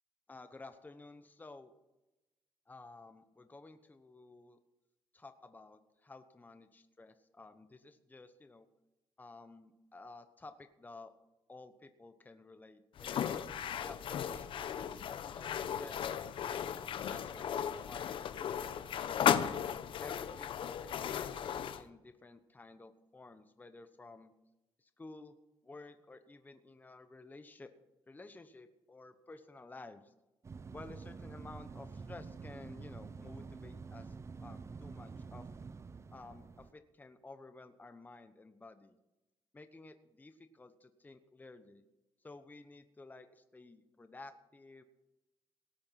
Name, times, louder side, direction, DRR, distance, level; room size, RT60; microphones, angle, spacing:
voice 1, 0.3-1.7 2.7-4.6 5.1-8.7 9.2-11.1 11.5-13.4 13.8-19.2 20.0-24.3 24.8-25.3 25.6-27.7 28.1-30.1 30.7-34.1 34.4-35.5 36.1-39.0 39.5-41.8 42.2-44.8, left 3 dB, 20° left, 9 dB, 1.0 m, -53 dB
sound 1, 13.0-21.8, left 9 dB, 65° left, 0.8 m, -36 dB
sound 2, 30.4-36.7, right 5 dB, 30° right, 0.6 m, -48 dB
18.5 x 8.7 x 5.9 m, 0.97 s
cardioid pair, 105°, 9 cm